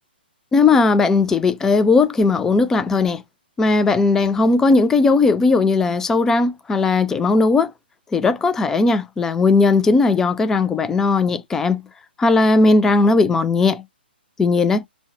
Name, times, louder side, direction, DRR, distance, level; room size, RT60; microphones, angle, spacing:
voice 1, 0.5-3.2 3.6-7.7 8.1-11.8 12.2-13.8 14.4-14.8, left 3 dB, 10° left, 0.3 m, -17 dB
5.2 x 2.1 x 4.4 m
figure-of-eight pair, 125°, 6 cm